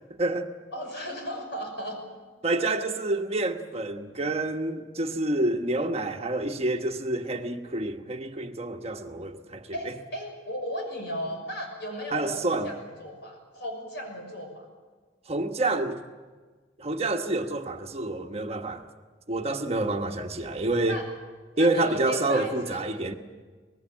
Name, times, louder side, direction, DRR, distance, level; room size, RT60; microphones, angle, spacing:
voice 1, 0.2-0.5 2.4-9.9 12.1-12.7 15.3-16.0 16.8-18.9 19.3-21.0 21.6-23.1, right 2 dB, 30° right, 1.3 m, -28 dB
voice 2, 0.7-2.0 9.7-14.7 20.9-21.1 21.5-22.9, equal, 60° left, 6.3 m, -36 dB
24.0 x 20.0 x 7.5 m
head